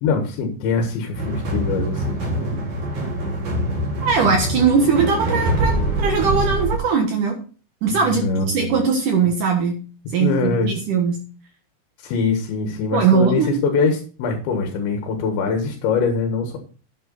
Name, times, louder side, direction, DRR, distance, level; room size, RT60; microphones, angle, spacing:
voice 1, 0.0-2.5 8.0-8.8 10.2-10.7 12.0-16.6, left 4 dB, 70° left, 4 dB, 3.6 m, -23 dB
sound 1, 1.1-6.8, right 1 dB, 40° right, 4.7 m, -24 dB
voice 2, 4.0-7.4 7.8-9.8 10.1-11.2 12.9-13.6, right 5 dB, 80° right, 2 dB, 1.8 m, -20 dB
11.5 x 8.6 x 4.0 m, 0.38 s
omnidirectional pair, 5.9 m